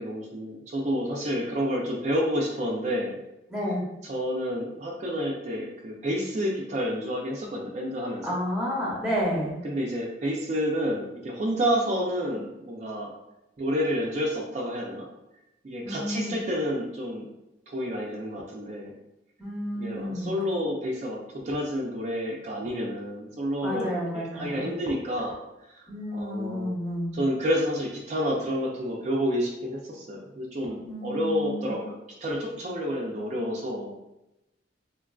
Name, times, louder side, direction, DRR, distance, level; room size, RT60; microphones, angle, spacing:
voice 1, 0.0-3.2 4.0-8.3 9.6-13.1 13.6-15.1 15.6-17.3 17.7-18.9 19.8-25.4 25.7-26.7 27.1-32.0 32.2-33.9, equal, 40° right, -2 dB, 0.4 m, -29 dB
voice 2, 3.5-3.8 8.2-9.6 15.8-16.3 19.4-20.3 23.6-24.7 25.9-27.2 30.8-31.7, equal, 5° right, -5 dB, 0.7 m, -30 dB
3.7 x 2.3 x 2.3 m, 0.94 s
head